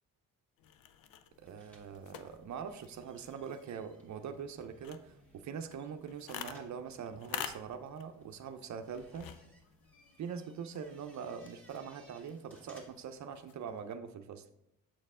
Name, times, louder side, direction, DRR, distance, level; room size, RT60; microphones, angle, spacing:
sound 1, 0.6-14.0, left 9 dB, 85° left, 0.6 m, -50 dB
sound 2, 1.3-13.2, right 1 dB, 5° left, 1.6 m, -63 dB
voice 1, 1.4-9.3 10.2-14.5, right 7 dB, 55° right, 8 dB, 0.6 m, -43 dB
7.5 x 4.4 x 3.6 m, 0.84 s
cardioid pair, 90°, 34 cm